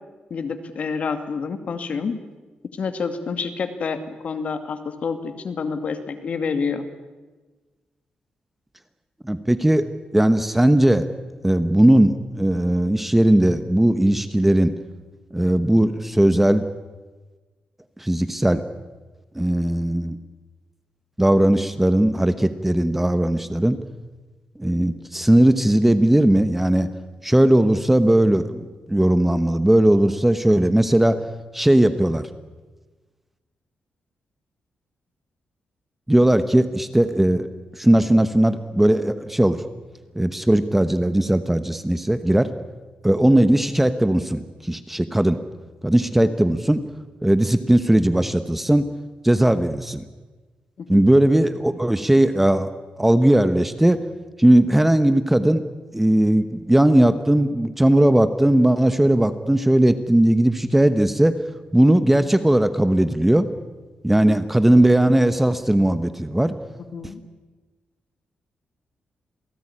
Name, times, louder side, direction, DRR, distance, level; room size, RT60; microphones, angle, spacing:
voice 1, 0.3-2.1 2.8-6.9 50.8-51.0 64.3-64.4 66.9-67.2, left 5 dB, 50° left, 9 dB, 2.4 m, -28 dB
voice 2, 9.2-9.9 10.1-11.1 11.4-14.7 15.3-16.6 18.0-18.6 19.3-20.2 21.2-23.8 24.6-26.9 27.2-31.2 31.5-32.3 36.1-37.5 37.7-39.6 40.1-42.5 43.0-45.4 45.8-46.8 47.2-48.8 49.2-50.0 50.9-52.7 53.0-54.1 54.4-55.6 55.9-61.4 61.7-63.5 64.0-66.5, right 1 dB, 5° right, 11 dB, 1.0 m, -18 dB
28.0 x 18.5 x 9.9 m, 1.3 s
wide cardioid pair, 155°, 3 cm